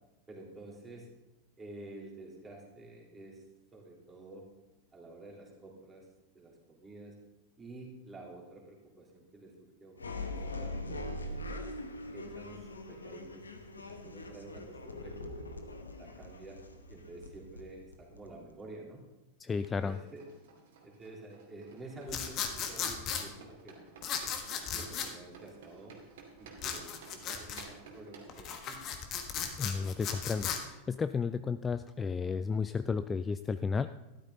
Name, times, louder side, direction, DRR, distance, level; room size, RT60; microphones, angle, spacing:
voice 1, 0.3-1.1 1.6-3.4 3.7-4.5 4.9-6.1 6.3-7.2 7.6-11.2 12.1-13.5 13.8-15.5 16.0-16.6 16.9-19.0 19.8-20.3 20.8-24.0 24.7-26.0 26.4-28.8, right 2 dB, 15° right, -2 dB, 3.4 m, -50 dB
sound 1, 10.0-18.6, left 1 dB, 75° left, 1.1 m, -42 dB
voice 2, 19.4-20.0 29.6-33.9, left 5 dB, 15° left, 12 dB, 0.3 m, -33 dB
sound 2, 19.5-30.5, right 5 dB, 55° right, 2.5 m, -55 dB
Flip Flop Manipulation, 22.1-23.2 24.0-25.1 26.6-27.7 28.3-30.6, left 7 dB, 35° left, 1.4 m, -36 dB
13.0 x 12.0 x 3.9 m, 1.0 s
figure-of-eight pair, 90°, 0 cm